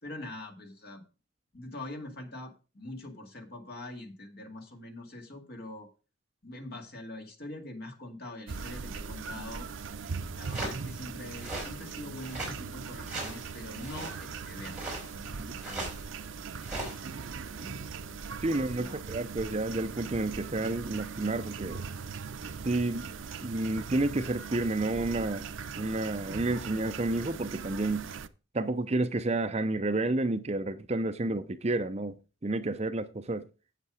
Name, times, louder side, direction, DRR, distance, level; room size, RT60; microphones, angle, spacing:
voice 1, 0.0-1.0 1.5-5.9 6.4-9.7 10.3-15.9 17.5-17.9 18.5-19.0, left 1 dB, 50° left, 2.1 m, -44 dB
sound 1, 8.5-28.3, right 5 dB, 75° right, 0.6 m, -40 dB
sound 2, 10.1-10.2 10.4-10.8 11.3-11.7 12.2-12.6 13.0-13.4 13.8-14.2 14.7-15.3 15.6-16.1 16.6-17.2, right 2 dB, 5° right, 5.0 m, -38 dB
voice 2, 18.4-21.8 22.6-25.5 25.8-28.1 28.5-32.2 32.4-33.4, right 2 dB, 30° right, 0.6 m, -30 dB
8.3 x 8.0 x 4.9 m
head